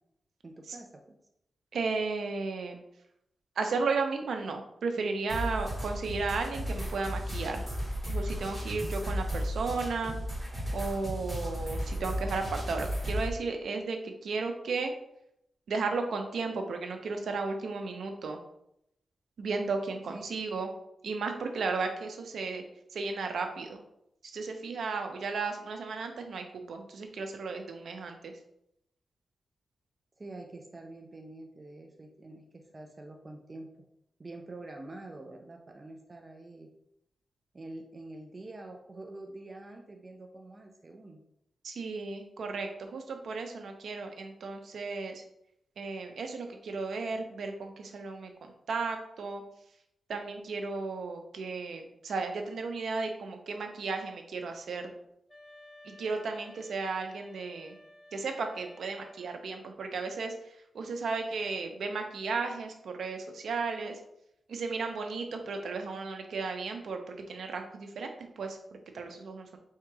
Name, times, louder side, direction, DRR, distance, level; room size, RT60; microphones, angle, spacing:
voice 1, 0.4-1.2 20.1-20.2 30.2-33.7 34.2-36.7 37.5-41.2, right 2 dB, 30° right, 3 dB, 0.5 m, -46 dB
voice 2, 1.7-2.8 3.6-7.6 8.1-10.1 10.7-14.9 15.7-18.4 19.4-20.7 21.0-22.6 22.9-23.8 24.2-28.3 41.6-45.2 45.8-49.4 50.1-54.9 55.8-57.8 58.1-64.0 64.5-69.6, right 4 dB, 80° right, 4 dB, 0.6 m, -34 dB
sound 1, 5.3-13.3, equal, 5° right, 1.7 m, -34 dB
sound 2, 55.3-59.4, left 1 dB, 10° left, 0.9 m, -55 dB
3.6 x 2.9 x 4.7 m, 0.79 s
wide cardioid pair, 110°, 0 cm